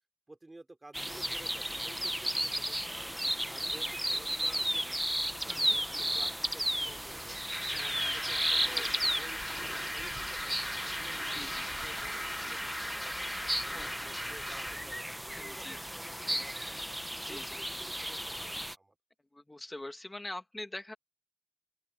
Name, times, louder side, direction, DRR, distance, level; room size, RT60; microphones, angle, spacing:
voice 1, 0.3-5.0 5.4-7.4 7.7-8.9 9.2-16.8 17.2-18.9, right 2 dB, 70° right, 3.2 m, -53 dB
sound 1, 0.9-18.7, equal, 15° right, 0.8 m, -35 dB
sound 2, 7.2-14.8, equal, 10° left, 1.2 m, -39 dB
voice 2, 7.6-8.2 8.6-9.0 11.3-11.7 13.7-14.1 15.3-15.8 17.2-17.6 19.3-20.9, left 1 dB, 50° left, 2.0 m, -44 dB
open air
wide cardioid pair, 50°, 0 cm